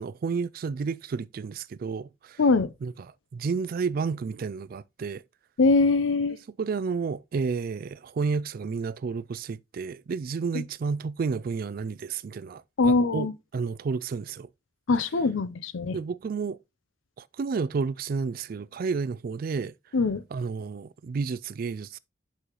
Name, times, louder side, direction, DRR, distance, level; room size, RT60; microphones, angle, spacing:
voice 1, 0.0-2.4 2.8-2.9 3.3-5.2 6.6-14.5 15.9-16.6 17.2-19.7 20.3-22.0, right 5 dB, 45° right, 0.3 m, -31 dB
voice 2, 2.4-2.7 5.6-6.4 12.8-13.3 14.9-16.0 19.9-20.2, left 3 dB, 75° left, 0.5 m, -22 dB
6.5 x 5.5 x 3.0 m
head